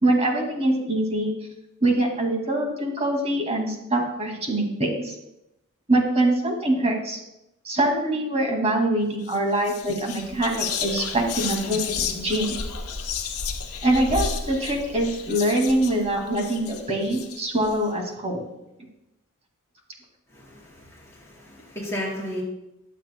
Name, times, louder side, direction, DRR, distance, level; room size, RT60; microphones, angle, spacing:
voice 1, 0.0-1.3 1.8-5.1 5.9-7.2 7.6-12.6 13.8-18.4, right 1 dB, 30° right, 1 dB, 2.2 m, -24 dB
Whispering, 9.2-9.4 9.7-17.7, left 6 dB, 75° left, 1.0 m, -32 dB
voice 2, 20.3-22.4, equal, 15° left, -6 dB, 4.2 m, -34 dB
22.0 x 7.5 x 2.2 m, 0.89 s
head